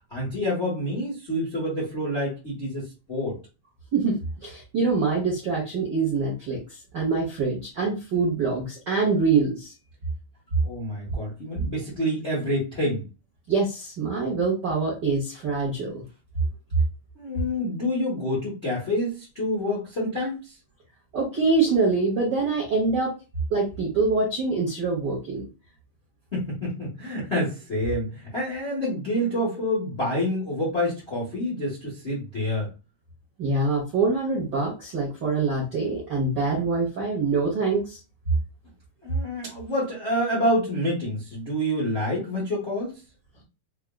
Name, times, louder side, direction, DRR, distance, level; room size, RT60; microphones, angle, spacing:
voice 1, 0.1-3.4 10.6-13.0 17.1-20.6 26.3-32.7 39.0-43.0, left 1 dB, 50° left, 0.8 m, -27 dB
voice 2, 3.9-9.7 13.5-16.0 21.1-23.1 23.5-25.4 33.4-38.0, right 4 dB, 75° right, 1.0 m, -25 dB
6.3 x 2.4 x 2.3 m
omnidirectional pair, 3.8 m